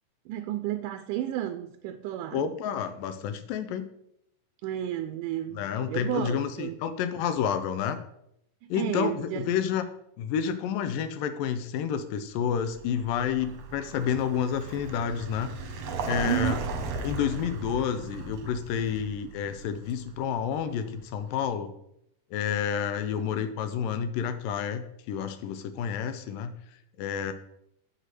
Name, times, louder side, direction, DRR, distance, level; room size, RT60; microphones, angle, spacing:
voice 1, 0.3-2.4 4.6-6.8 8.7-9.5 16.2-16.6, right 12 dB, 80° right, 9 dB, 2.0 m, -32 dB
voice 2, 2.3-3.9 5.5-8.0 8.7-9.8 10.2-15.5 16.1-16.6 17.0-21.7 22.3-26.5 27.0-27.3, left 8 dB, 85° left, 10 dB, 2.3 m, -29 dB
Vehicle, 12.5-21.3, right 4 dB, 65° right, 1.7 m, -37 dB
8.1 x 6.4 x 5.8 m, 0.76 s
omnidirectional pair, 4.0 m